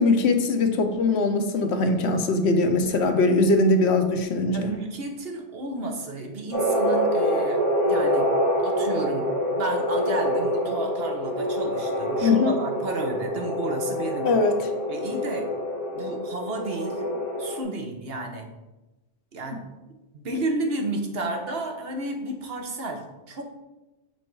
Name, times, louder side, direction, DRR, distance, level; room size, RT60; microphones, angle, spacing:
voice 1, 0.0-4.7 12.2-12.5 14.2-14.5, left 3 dB, 80° left, 6 dB, 1.0 m, -21 dB
voice 2, 4.5-8.3 8.6-14.3 14.9-15.5 15.9-17.1 17.4-18.5 19.3-19.6 20.1-23.4, right 2 dB, 65° right, 3 dB, 1.1 m, -32 dB
sound 1, 6.5-17.6, equal, 15° left, 2.3 m, -26 dB
6.0 x 4.3 x 4.6 m, 1.0 s
omnidirectional pair, 1.1 m